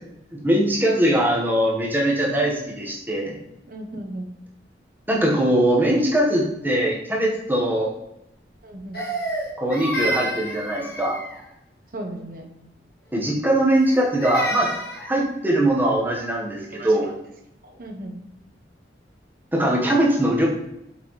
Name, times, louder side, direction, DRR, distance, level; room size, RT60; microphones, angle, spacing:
voice 1, 0.3-3.4 5.1-7.9 9.6-11.2 13.1-14.7 15.1-17.1 19.5-20.5, right 1 dB, 10° right, -3 dB, 1.3 m, -21 dB
voice 2, 3.7-4.3 8.6-9.0 11.9-12.5 14.7-14.8 16.7-17.2 17.7-18.2, right 1 dB, 50° right, 2 dB, 1.1 m, -36 dB
Crying sobbing, 8.9-11.5 13.7-15.1, right 1 dB, 55° left, 1.7 m, -29 dB
6.9 x 5.7 x 3.2 m, 0.87 s
head